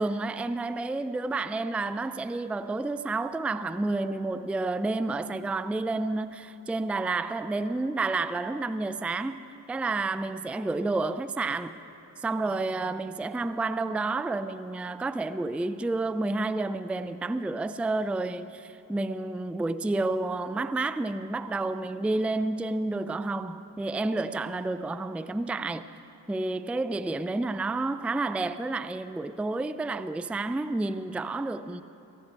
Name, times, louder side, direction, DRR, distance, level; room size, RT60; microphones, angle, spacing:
voice 1, 0.0-9.4 9.7-11.7 12.2-25.8 26.3-31.8, right 2 dB, 5° right, 0.4 m, -30 dB
18.5 x 14.5 x 4.5 m
supercardioid pair, 50°, 41 cm